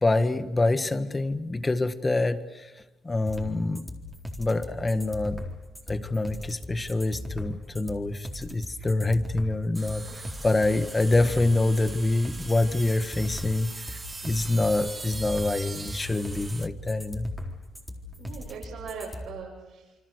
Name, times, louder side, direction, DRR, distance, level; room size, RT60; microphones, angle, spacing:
voice 1, 0.0-2.7 3.0-3.8 4.4-5.4 5.9-10.1 10.4-17.3, left 2 dB, 20° left, 11 dB, 1.7 m, -26 dB
sound 1, 3.3-19.3, left 1 dB, 5° left, 4.0 m, -38 dB
sound 2, 9.7-16.7, right 3 dB, 25° right, 1.2 m, -41 dB
voice 2, 18.2-20.0, right 5 dB, 75° right, -5 dB, 7.4 m, -40 dB
27.5 x 24.5 x 6.7 m, 1.1 s
cardioid pair, 90°, 0 cm